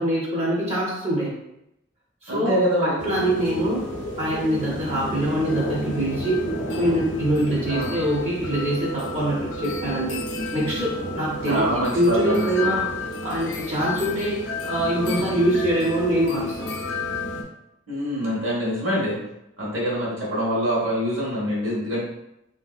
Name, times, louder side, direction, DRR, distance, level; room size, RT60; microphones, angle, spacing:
voice 1, 0.0-1.4 2.2-3.9 4.2-6.4 6.7-10.2 10.5-12.9 13.2-16.8, right 1 dB, 35° right, -5 dB, 0.6 m, -24 dB
voice 2, 2.3-3.0 7.7-7.9 11.5-12.7 17.9-19.2 19.6-22.0, equal, 85° right, -5 dB, 1.2 m, -25 dB
sound 1, 3.0-17.4, left 2 dB, 65° left, 0.5 m, -31 dB
3.2 x 2.7 x 2.3 m, 0.85 s
head